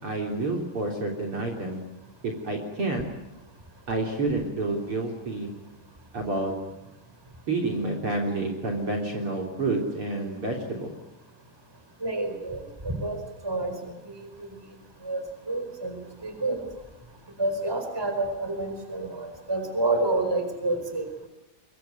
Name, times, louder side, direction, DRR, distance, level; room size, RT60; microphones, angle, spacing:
voice 1, 0.0-1.8 2.2-3.1 3.9-5.5 6.1-6.5 7.5-10.9, right 2 dB, 40° right, 1 dB, 4.0 m, -29 dB
voice 2, 12.0-13.2 13.4-14.5 15.0-16.6 17.4-21.1, right 2 dB, 5° right, 7 dB, 4.3 m, -29 dB
24.0 x 23.5 x 9.2 m, 1.0 s
omnidirectional pair, 3.9 m